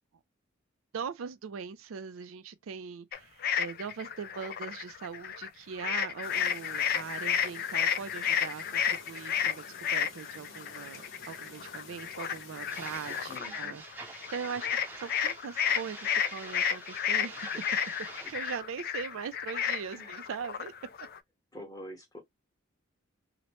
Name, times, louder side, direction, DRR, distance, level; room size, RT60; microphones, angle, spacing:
voice 1, 0.9-13.8 14.3-14.7 15.0-17.5 18.3-20.7, right 6 dB, 75° right, 0.4 m, -40 dB
sound 1, 3.1-5.5 5.8-21.2, left 8 dB, 45° left, 0.3 m, -32 dB
Chirp tweet, 6.2-13.4, left 4 dB, 70° left, 0.9 m, -50 dB
sound 2, 12.7-18.6, right 2 dB, 10° right, 0.6 m, -46 dB
voice 2, 13.3-13.8 17.1-17.4 19.9-20.2 21.5-22.2, equal, 20° left, 1.0 m, -47 dB
2.9 x 2.1 x 2.9 m
head